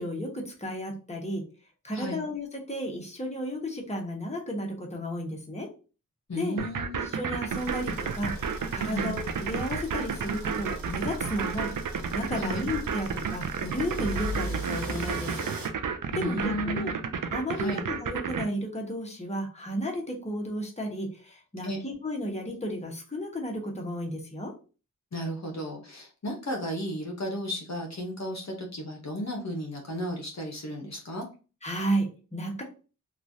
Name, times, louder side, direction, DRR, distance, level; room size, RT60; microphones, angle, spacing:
voice 1, 0.0-1.4 1.8-5.7 6.3-6.5 7.1-11.7 12.1-15.5 16.1-16.9 17.3-24.5 31.6-32.6, equal, 20° left, 0 dB, 1.0 m, -33 dB
voice 2, 6.3-7.1 8.9-9.2 12.4-12.7 16.1-16.9 17.6-17.8 21.6-21.8 25.1-31.2, equal, 50° left, 1 dB, 0.8 m, -34 dB
sound 1, 6.6-18.4, right 6 dB, 65° right, 0.5 m, -31 dB
sound 2, 7.5-15.7, right 1 dB, 85° right, 0.8 m, -39 dB
3.1 x 2.4 x 2.6 m, 0.35 s
cardioid pair, 45°, 35 cm